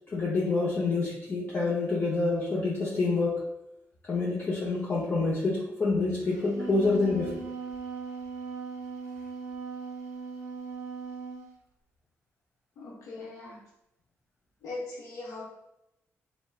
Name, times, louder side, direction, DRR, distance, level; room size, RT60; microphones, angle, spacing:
voice 1, 0.1-3.4 4.0-7.3, left 3 dB, 40° left, -5 dB, 0.5 m, -27 dB
Wind instrument woodwind instrument, 6.3-11.5, right 5 dB, 90° right, 0.4 m, -39 dB
voice 2, 12.8-13.6 14.6-15.4, left 2 dB, 85° left, -3 dB, 0.8 m, -40 dB
3.2 x 2.0 x 2.2 m, 0.86 s
cardioid pair, 90°, 5 cm